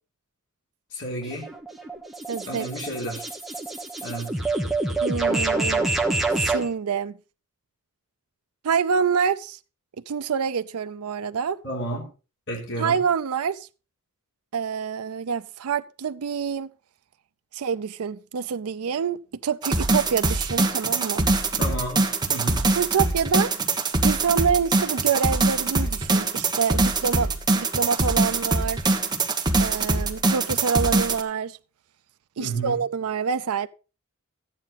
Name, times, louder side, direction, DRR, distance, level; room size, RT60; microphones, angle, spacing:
voice 1, 0.9-1.5 2.5-3.3 4.0-4.4 11.6-12.1 12.5-13.0 21.6-22.6 32.4-32.8, right 1 dB, 55° left, 3.7 m, -31 dB
sound 1, 1.2-6.7, right 2 dB, ahead, 1.3 m, -27 dB
voice 2, 2.3-2.7 5.0-5.9 6.4-7.2 8.6-9.6 10.1-11.6 12.8-13.7 14.5-16.7 17.5-21.3 22.8-23.5 24.0-28.8 29.6-31.6 32.4-33.7, right 6 dB, 75° right, 0.5 m, -26 dB
sound 2, 19.6-31.2, right 3 dB, 20° right, 1.3 m, -23 dB
13.5 x 9.2 x 4.0 m
head